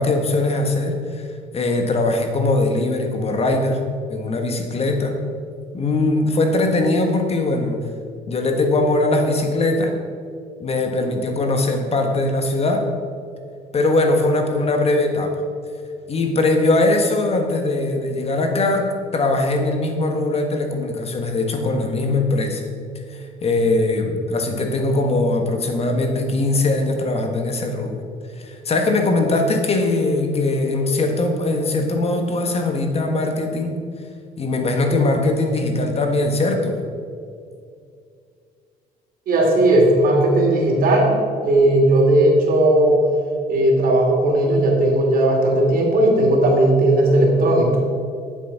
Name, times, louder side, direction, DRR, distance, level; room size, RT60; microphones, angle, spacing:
voice 1, 0.0-5.1 5.7-7.8 8.3-9.9 10.6-12.9 13.7-15.4 16.1-22.6 23.1-28.0 28.4-33.8 34.4-36.8, left 2 dB, 35° left, 4 dB, 1.5 m, -21 dB
voice 2, 39.3-43.0 43.5-47.8, right 1 dB, 60° right, 0 dB, 2.9 m, -16 dB
11.0 x 7.6 x 5.7 m, 2.3 s
cardioid pair, 110°, 17 cm